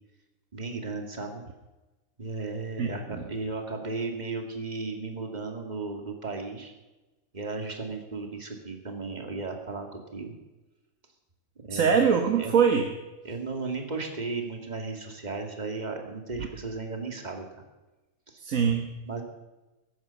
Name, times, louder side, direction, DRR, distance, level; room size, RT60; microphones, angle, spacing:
voice 1, 0.5-1.4 2.2-6.7 7.3-10.3 11.6-12.1 12.4-12.6 13.2-17.6 18.3-18.4 19.1-19.2, right 3 dB, 30° right, 3 dB, 2.2 m, -35 dB
voice 2, 2.8-3.3 11.7-12.9 16.4-16.5 18.4-18.9, right 6 dB, 75° right, 3 dB, 1.6 m, -23 dB
15.0 x 11.0 x 6.9 m, 1.1 s
omnidirectional pair, 1.4 m